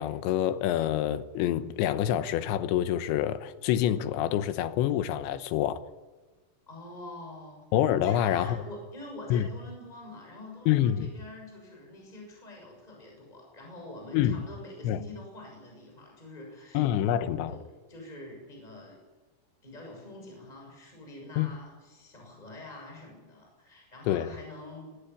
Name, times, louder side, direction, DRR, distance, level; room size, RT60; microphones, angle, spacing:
voice 1, 0.0-5.8 7.7-8.6 9.3-9.5 10.7-11.1 14.1-14.5 14.8-15.0 16.7-17.5 21.4-21.5 24.1-24.3, left 11 dB, 80° left, 3.2 m, -26 dB
voice 2, 6.7-7.6 8.0-16.8 17.5-17.6 17.9-19.0 19.6-24.9, left 2 dB, 10° left, 6.5 m, -46 dB
20.5 x 16.5 x 9.9 m
omnidirectional pair, 5.4 m